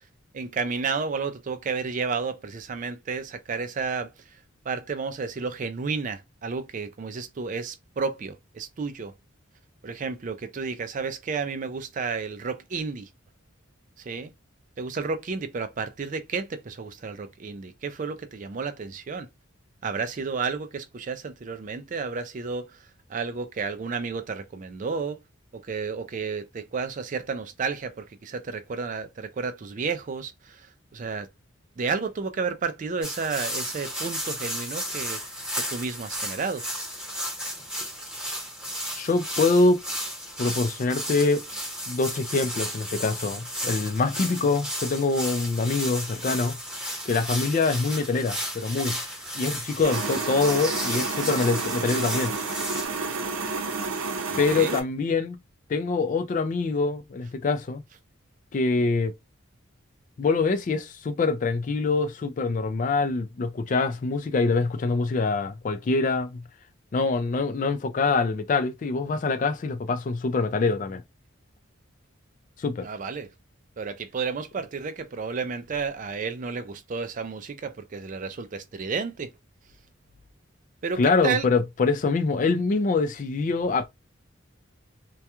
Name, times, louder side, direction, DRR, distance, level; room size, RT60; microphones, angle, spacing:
voice 1, 0.3-4.1 4.7-9.1 9.8-13.1 14.0-14.3 14.8-19.3 19.8-22.8 23.1-25.2 25.5-30.7 30.9-31.3 31.8-35.2 35.7-36.6 54.3-54.8 72.8-73.3 73.8-79.3 80.8-81.5, right 5 dB, 40° right, 0.3 m, -31 dB
sound 1, 33.0-52.9, equal, 5° right, 0.8 m, -34 dB
voice 2, 38.9-39.8 40.4-41.5 41.9-46.6 47.1-49.0 49.4-52.3 54.4-55.4 55.7-57.8 58.5-59.1 60.2-66.4 66.9-71.0 72.6-72.9 81.0-83.9, left 3 dB, 40° left, 0.3 m, -24 dB
sound 2, 49.8-54.8, right 4 dB, 80° right, 0.6 m, -30 dB
2.3 x 2.2 x 2.8 m
head